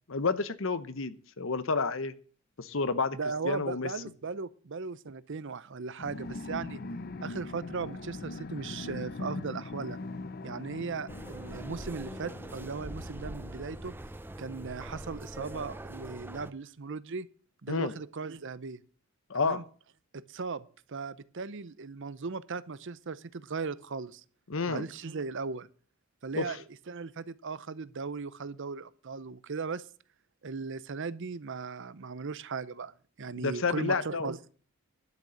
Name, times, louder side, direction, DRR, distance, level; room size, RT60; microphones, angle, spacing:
voice 1, 0.1-2.1 2.6-3.2 3.4-3.9 17.7-17.9 19.3-19.6 24.5-24.9 26.3-26.6 33.4-34.3, left 4 dB, 65° left, 0.9 m, -30 dB
voice 2, 3.1-6.8 7.2-10.0 10.4-13.9 14.4-17.3 17.6-18.8 19.3-19.6 20.1-24.2 24.7-25.7 26.2-29.8 30.4-34.4, right 4 dB, 60° right, 0.7 m, -37 dB
sound 1, 6.0-14.1, left 2 dB, 45° left, 0.6 m, -41 dB
sound 2, 11.1-16.5, right 1 dB, 10° right, 0.5 m, -43 dB
11.5 x 6.6 x 8.5 m
head